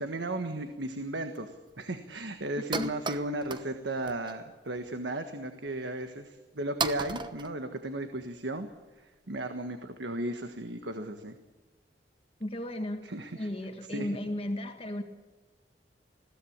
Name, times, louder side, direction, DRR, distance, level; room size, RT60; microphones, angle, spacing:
voice 1, 0.0-8.7 9.0-11.4 13.0-13.5 13.9-14.1, right 1 dB, 90° right, 7 dB, 1.5 m, -35 dB
sound 1, 0.7-0.8 1.4-1.5 1.7-1.8 2.1-2.2 2.5-3.7 4.0-4.4 4.8-5.0 5.7-5.8 6.4-6.5 6.8-8.3, right 4 dB, 25° right, 1.0 m, -35 dB
voice 2, 12.4-13.1 13.3-15.0, left 1 dB, 35° left, 5 dB, 1.7 m, -34 dB
21.0 x 16.5 x 8.7 m, 1.2 s
head